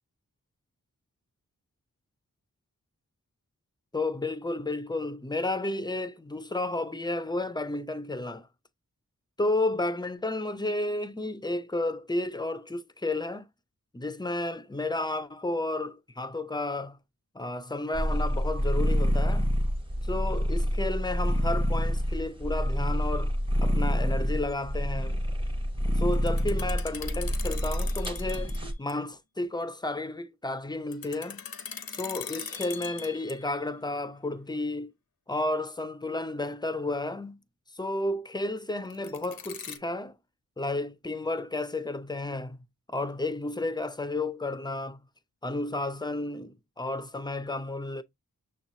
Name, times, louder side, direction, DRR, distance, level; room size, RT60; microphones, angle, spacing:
voice 1, 3.9-8.5 9.4-13.5 13.9-17.0 17.3-19.5 20.0-23.4 23.6-25.2 26.0-28.5 28.8-31.4 31.9-34.9 35.3-37.4 37.8-40.2 40.6-42.6 42.9-45.0 45.4-48.0, left 2 dB, 10° left, 0.4 m, -32 dB
sound 1, 17.9-28.7, equal, 15° right, 0.8 m, -27 dB
sound 2, 26.1-28.6 28.9-29.0 30.9-33.6 38.9-39.8, left 6 dB, 85° left, 0.7 m, -40 dB
6.3 x 3.0 x 2.7 m
wide cardioid pair, 90°, 35 cm